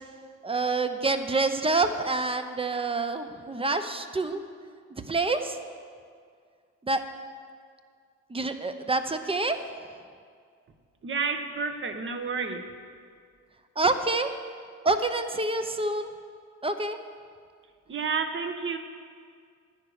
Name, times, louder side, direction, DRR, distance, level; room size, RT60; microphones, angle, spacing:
voice 1, 0.4-4.4 4.9-5.6 6.8-7.0 8.3-9.6 13.8-14.3 14.8-16.1 16.6-17.0, right 3 dB, 20° right, 8 dB, 0.8 m, -27 dB
voice 2, 11.0-12.7 17.9-18.8, right 5 dB, 40° right, 6 dB, 1.2 m, -30 dB
10.0 x 9.8 x 6.4 m, 2.1 s
cardioid pair, 90°, 30 cm